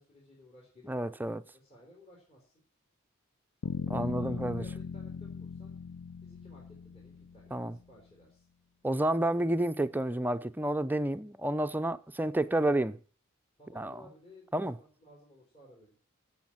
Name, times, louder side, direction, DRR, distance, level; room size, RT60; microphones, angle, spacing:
voice 1, 0.0-2.5 3.9-5.8 6.2-8.4 13.6-16.0, left 1 dB, 30° left, 4.1 m, -57 dB
voice 2, 0.9-1.4 3.9-4.6 7.5-7.8 8.8-13.0 13.7-14.0 14.5-14.8, right 1 dB, 10° right, 0.5 m, -30 dB
sound 1, 3.6-7.7, left 5 dB, 80° left, 0.6 m, -39 dB
16.0 x 6.4 x 7.4 m
head